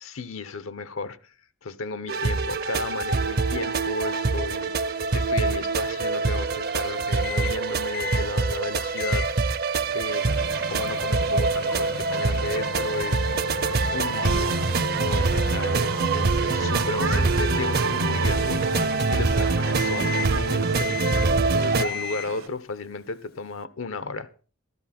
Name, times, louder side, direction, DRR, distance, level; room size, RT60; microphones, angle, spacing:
voice 1, 0.0-1.3 1.6-9.6 9.9-10.3 10.7-13.3 13.9-14.6 14.9-21.1 21.5-24.3, left 3 dB, 85° left, 0.8 m, -34 dB
sound 1, 2.1-21.8, right 3 dB, 50° right, 0.6 m, -24 dB
Microwave oven, 7.2-7.6 7.9-8.3 9.0-9.3 9.8-19.4 19.8-20.4 20.8-21.4 21.8-22.4, left 5 dB, 50° left, 0.6 m, -36 dB
sound 2, 10.0-22.5, right 5 dB, 85° right, 1.7 m, -38 dB
13.5 x 13.0 x 4.3 m
head